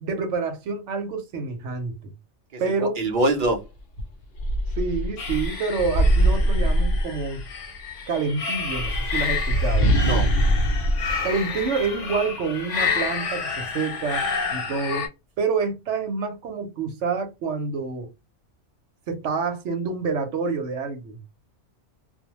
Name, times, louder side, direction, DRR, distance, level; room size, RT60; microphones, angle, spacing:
voice 1, 0.0-2.1 2.6-3.0 4.8-7.4 8.1-9.9 11.2-14.2 14.5-15.1 15.4-18.1 19.1-21.2, right 4 dB, 80° right, 1.0 m, -27 dB
voice 2, 2.5-3.7 10.0-10.3, right 2 dB, 50° right, 0.8 m, -24 dB
sound 1, 3.4-3.6 4.0-7.6 8.5-12.2, right 1 dB, 60° left, 0.8 m, -23 dB
sound 2, 5.2-15.1, left 5 dB, 85° left, 1.2 m, -30 dB
2.6 x 2.0 x 2.9 m
omnidirectional pair, 1.2 m